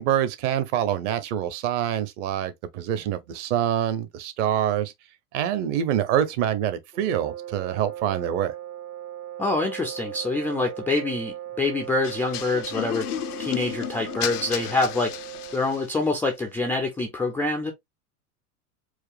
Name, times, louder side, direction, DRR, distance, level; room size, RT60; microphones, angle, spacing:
voice 1, 0.0-4.9 5.3-8.5, right 10 dB, 50° right, 1.0 m, -25 dB
sound 1, 6.9-15.9, right 12 dB, 80° right, 2.3 m, -38 dB
voice 2, 9.4-13.1 13.4-15.1 15.5-17.7, left 2 dB, 5° left, 0.3 m, -26 dB
sound 2, 12.0-16.0, left 13 dB, 75° left, 0.6 m, -33 dB
4.7 x 2.1 x 3.4 m
hypercardioid pair, 95°, 46 cm